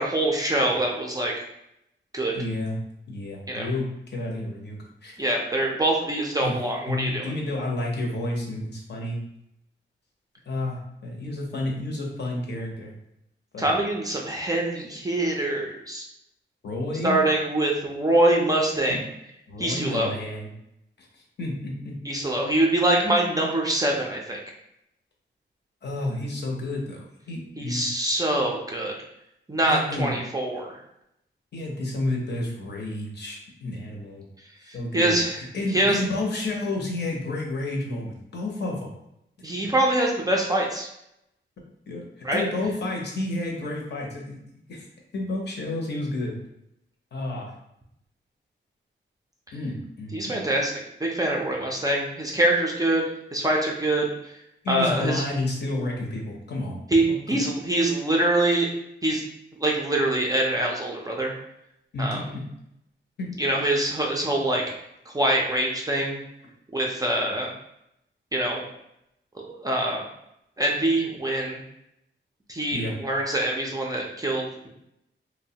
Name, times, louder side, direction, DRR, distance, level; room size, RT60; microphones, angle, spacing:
voice 1, 0.0-1.3 2.1-2.3 3.5-3.7 5.2-7.3 13.6-16.0 17.0-19.0 19.6-20.1 22.1-24.4 27.6-28.9 29.5-30.8 34.7-35.4 35.7-36.0 39.4-40.9 42.2-42.4 50.1-50.7 51.0-54.1 54.7-55.2 56.9-58.7 59.0-59.2 59.6-61.3 62.0-62.2 63.4-64.6 65.1-66.2 66.7-67.5 68.3-68.6 69.4-70.0 70.6-71.6 72.5-74.7, right 1 dB, 20° right, -1 dB, 0.3 m, -24 dB
voice 2, 2.3-2.8 3.1-5.2 6.4-6.6 6.9-9.2 10.5-12.9 13.5-13.7 16.6-17.2 18.9-19.0 19.5-20.5 21.0-22.0 25.8-27.9 29.6-30.2 31.5-34.2 34.7-38.9 41.9-44.9 45.1-46.4 47.1-47.6 49.5-50.4 54.6-56.8 57.1-57.4 61.9-62.4 63.2-63.3 72.7-72.9, left 2 dB, 55° left, 0 dB, 0.6 m, -31 dB
3.0 x 2.0 x 2.7 m, 0.80 s
wide cardioid pair, 170°, 21 cm